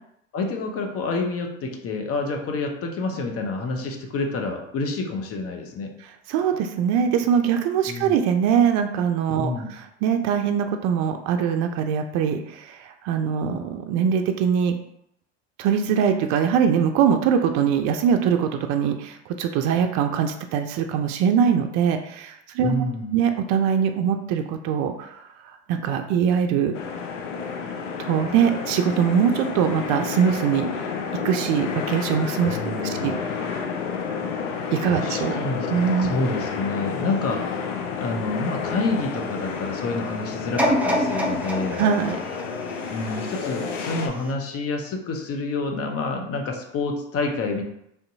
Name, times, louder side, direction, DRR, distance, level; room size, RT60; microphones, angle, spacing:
voice 1, 0.3-5.9 7.9-8.2 9.4-9.7 22.6-23.2 32.5-33.2 34.8-35.7 36.0-37.6 38.0-41.8 42.9-47.6, left 3 dB, 40° left, 3 dB, 0.8 m, -28 dB
voice 2, 6.3-14.7 15.6-22.7 23.1-26.7 28.0-30.7 31.2-32.6 32.8-33.1 34.7-35.4 35.7-36.1 41.8-42.2, right 7 dB, 55° right, 6 dB, 0.4 m, -22 dB
sound 1, 26.7-44.1, left 5 dB, 85° left, 0.6 m, -30 dB
sound 2, 40.6-43.6 44.2-44.3, equal, 5° right, 0.6 m, -26 dB
3.5 x 2.6 x 2.6 m, 0.77 s
hypercardioid pair, 75°, 36 cm